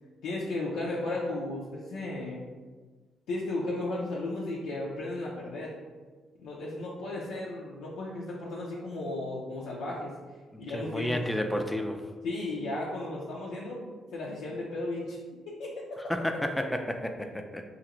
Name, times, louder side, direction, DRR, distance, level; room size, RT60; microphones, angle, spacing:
voice 1, 0.2-2.4 3.3-5.7 6.4-10.1 10.6-11.2 12.2-13.8 14.1-15.2 15.5-15.7, left 2 dB, 85° left, -5 dB, 0.4 m, -34 dB
voice 2, 10.5-12.0 16.1-17.6, left 1 dB, 10° left, 5 dB, 0.3 m, -31 dB
3.1 x 2.5 x 2.9 m, 1.4 s
cardioid pair, 90°, 0 cm